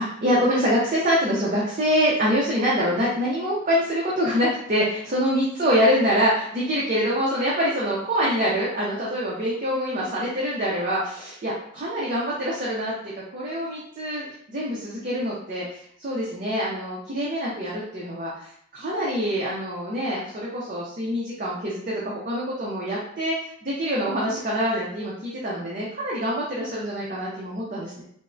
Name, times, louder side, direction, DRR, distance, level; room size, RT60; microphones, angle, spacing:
voice 1, 0.0-28.0, equal, 40° right, -5 dB, 0.5 m, -25 dB
3.3 x 2.0 x 2.5 m, 0.69 s
head